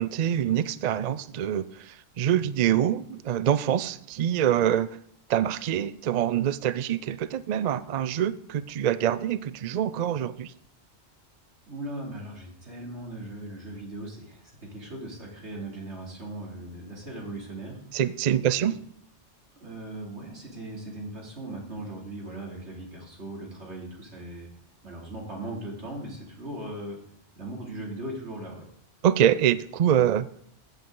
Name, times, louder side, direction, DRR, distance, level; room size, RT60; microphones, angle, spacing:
voice 1, 0.0-4.9 5.3-10.5 17.9-18.8 29.0-30.3, right 10 dB, 55° right, 15 dB, 0.5 m, -25 dB
voice 2, 11.7-17.8 18.4-18.8 19.6-24.5 24.8-27.0 27.3-28.6, right 1 dB, 90° right, -2 dB, 3.2 m, -38 dB
14.0 x 8.1 x 3.8 m, 0.66 s
omnidirectional pair, 1.1 m